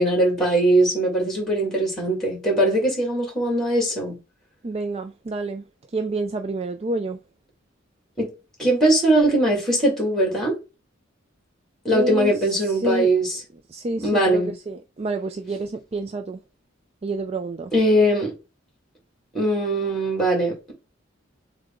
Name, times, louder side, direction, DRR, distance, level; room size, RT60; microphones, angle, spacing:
voice 1, 0.0-4.2 8.2-8.3 8.6-10.5 11.8-13.4 14.0-14.5 17.7-18.3 19.3-20.7, right 1 dB, ahead, 2.1 m, -20 dB
voice 2, 4.6-5.6 5.9-7.2 11.9-13.1 13.7-16.4 17.0-17.7, right 2 dB, 30° right, 0.4 m, -28 dB
6.6 x 2.2 x 3.7 m
head